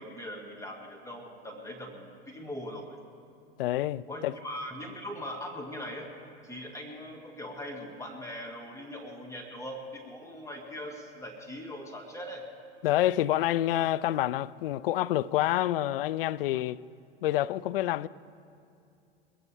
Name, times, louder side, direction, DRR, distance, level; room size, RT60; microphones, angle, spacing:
voice 1, 0.0-3.0 4.1-6.1 6.4-12.5, equal, 10° left, 2.2 m, -41 dB
voice 2, 3.6-4.3 12.8-16.8 17.2-18.1, left 14 dB, 65° left, 0.4 m, -27 dB
21.5 x 16.0 x 3.6 m
hypercardioid pair, 90°, 30 cm